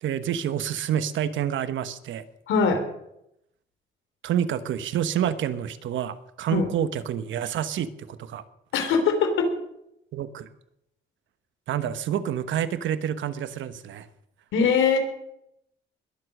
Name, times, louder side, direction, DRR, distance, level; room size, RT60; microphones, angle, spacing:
voice 1, 0.0-2.3 4.2-8.4 10.1-10.5 11.7-14.1, right 9 dB, 75° right, 12 dB, 1.1 m, -28 dB
voice 2, 2.5-2.8 6.5-6.7 8.7-9.5 14.5-15.0, left 5 dB, 85° left, 6 dB, 3.5 m, -21 dB
21.0 x 7.9 x 6.5 m, 0.80 s
cardioid pair, 90°, 20 cm